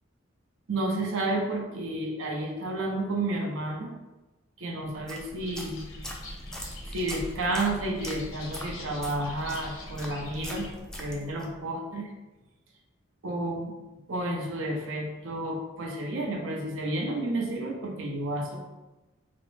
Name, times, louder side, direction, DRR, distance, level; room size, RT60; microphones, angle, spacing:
voice 1, 0.7-3.9 4.6-5.8 6.9-10.7 10.9-12.1 13.2-13.7 14.1-18.6, right 2 dB, 75° right, 1 dB, 0.7 m, -31 dB
sound 1, 4.9-11.6, equal, 5° left, 0.3 m, -41 dB
sound 2, 5.4-10.7, left 3 dB, 80° left, 0.6 m, -47 dB
3.6 x 2.0 x 3.1 m, 1.1 s
head